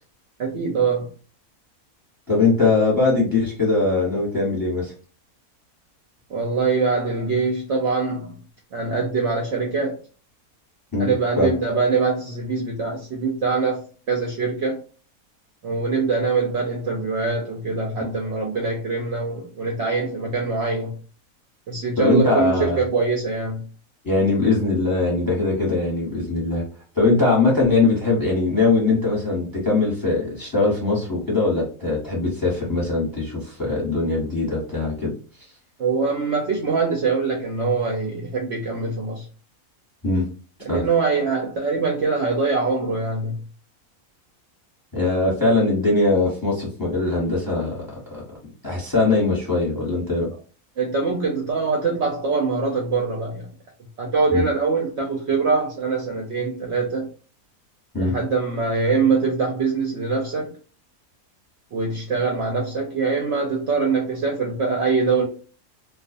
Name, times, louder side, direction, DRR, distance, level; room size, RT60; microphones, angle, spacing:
voice 1, 0.4-1.1 6.3-8.4 8.7-10.0 11.0-13.8 14.1-14.8 15.6-20.9 21.7-23.6 35.8-39.2 40.6-43.4 50.8-53.5 54.0-57.1 58.0-60.5 61.7-65.2, right 4 dB, 65° right, 0.7 m, -23 dB
voice 2, 2.3-4.9 10.9-11.5 22.0-22.8 24.0-26.6 26.9-35.1 40.0-40.3 40.7-40.8 44.9-48.2 48.6-50.3 54.3-54.5 57.9-58.2, left 3 dB, 15° left, 0.9 m, -21 dB
2.4 x 2.3 x 2.5 m
omnidirectional pair, 1.6 m